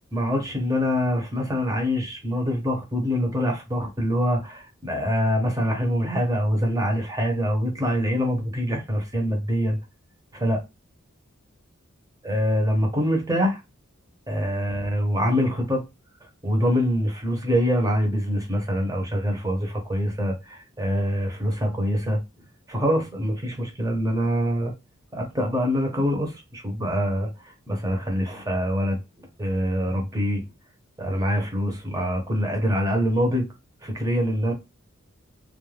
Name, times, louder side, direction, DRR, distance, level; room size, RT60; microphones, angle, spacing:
voice 1, 0.1-9.8 10.3-10.6 12.2-13.6 14.3-15.8 16.4-22.2 22.7-24.7 25.1-27.3 27.7-29.0 29.4-30.4 31.0-33.5 33.8-34.5, equal, 15° right, 0.8 m, -24 dB
2.3 x 2.2 x 3.2 m
head